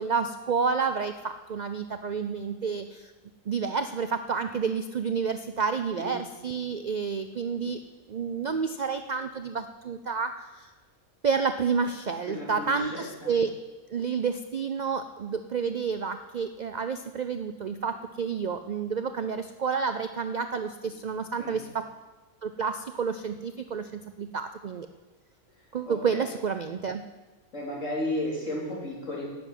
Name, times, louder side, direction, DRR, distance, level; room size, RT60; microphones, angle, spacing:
voice 1, 0.0-3.1 3.5-7.8 8.1-10.7 11.2-13.5 13.9-21.9 22.4-24.9 25.7-27.0, right 5 dB, 70° right, 9 dB, 0.4 m, -30 dB
voice 2, 12.3-13.3 21.4-21.6 25.9-26.0 27.5-29.2, left 1 dB, 60° left, -5 dB, 4.1 m, -33 dB
11.0 x 7.1 x 9.1 m, 1.2 s
omnidirectional pair, 1.4 m